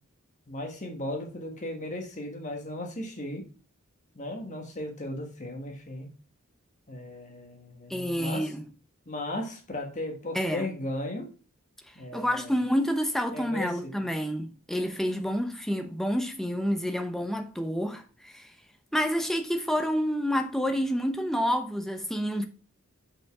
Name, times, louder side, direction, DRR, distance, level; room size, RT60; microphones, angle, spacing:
voice 1, 0.5-3.4 4.1-6.1 6.9-8.5 9.1-11.3 11.9-12.5 13.3-14.1, left 1 dB, 35° left, 1.5 m, -36 dB
voice 2, 7.9-8.6 10.3-10.7 12.1-18.4 18.9-22.4, equal, ahead, 0.8 m, -28 dB
6.1 x 5.3 x 4.7 m
head